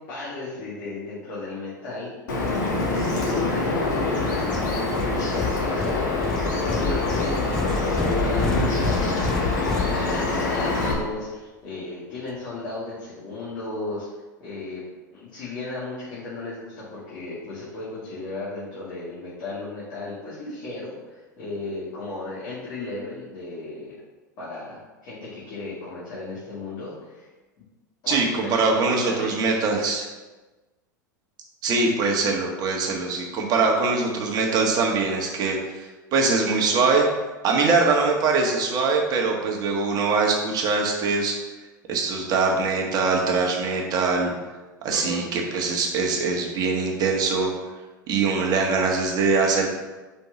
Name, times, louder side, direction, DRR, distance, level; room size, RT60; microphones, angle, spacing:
voice 1, 0.1-2.1 2.6-14.8 15.1-23.9 24.4-27.3 28.0-29.6 44.9-45.2, left 2 dB, 45° left, -9 dB, 2.3 m, -35 dB
Bird vocalization bird call bird song, 2.3-10.9, left 3 dB, 70° left, 1.7 m, -25 dB
sound 1, 4.5-10.5, left 2 dB, 5° left, 0.5 m, -31 dB
voice 2, 28.1-30.1 31.6-37.0 37.4-41.3 41.9-44.3 44.8-47.5 48.1-49.7, right 4 dB, 40° right, 0 dB, 1.5 m, -22 dB
5.6 x 4.4 x 5.9 m, 1.2 s
figure-of-eight pair, 85°, 10 cm